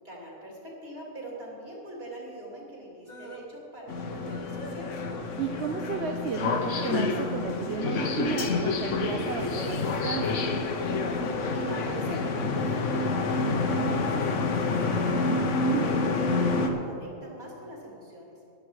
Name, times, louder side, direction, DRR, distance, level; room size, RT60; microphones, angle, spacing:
voice 1, 0.0-4.9 11.5-15.4 15.8-18.4, right 1 dB, 40° right, -4 dB, 3.4 m, -42 dB
sound 1, 3.1-3.5 3.9-6.1 6.4-13.6 14.0-14.2 14.7-14.8 15.2-15.3, left 1 dB, 35° left, 1.0 m, -46 dB
sound 2, 3.9-16.7, left 3 dB, 60° left, 1.3 m, -28 dB
voice 2, 5.4-10.4 15.6-15.9, right 6 dB, 55° right, 4 dB, 0.9 m, -33 dB
13.0 x 11.0 x 4.9 m, 2.6 s
omnidirectional pair, 1.6 m